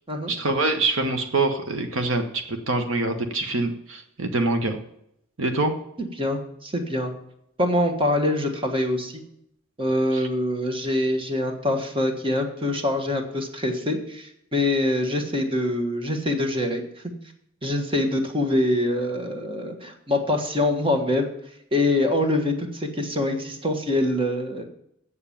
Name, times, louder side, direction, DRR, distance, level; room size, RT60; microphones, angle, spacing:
voice 1, 0.3-4.8 5.4-5.7 10.1-10.3, right 2 dB, 70° right, 7 dB, 1.1 m, -25 dB
voice 2, 6.2-7.1 7.6-9.1 9.8-16.8 17.6-21.3 21.7-24.6, left 1 dB, 25° right, 5 dB, 1.5 m, -24 dB
8.5 x 6.9 x 7.2 m, 0.75 s
head